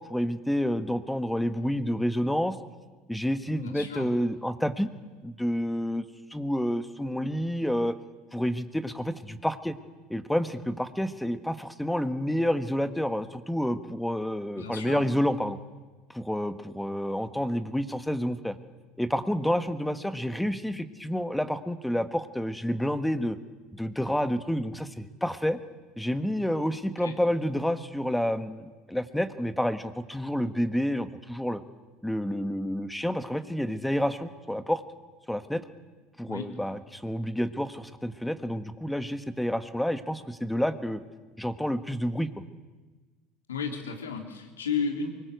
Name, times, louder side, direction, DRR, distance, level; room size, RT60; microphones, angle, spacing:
voice 1, 0.1-2.6 3.1-4.9 5.2-6.0 6.3-7.9 8.3-9.8 10.1-15.6 16.1-18.5 19.0-23.4 23.7-25.6 26.0-31.6 32.0-34.8 35.3-35.6 36.2-41.0 41.4-42.3, equal, 5° left, 11 dB, 1.5 m, -29 dB
voice 2, 3.6-4.1 14.6-15.1 27.0-27.2 36.3-36.5 43.5-45.1, left 5 dB, 85° left, 3 dB, 3.5 m, -33 dB
24.0 x 21.5 x 8.1 m, 1.3 s
hypercardioid pair, 75°, 0 cm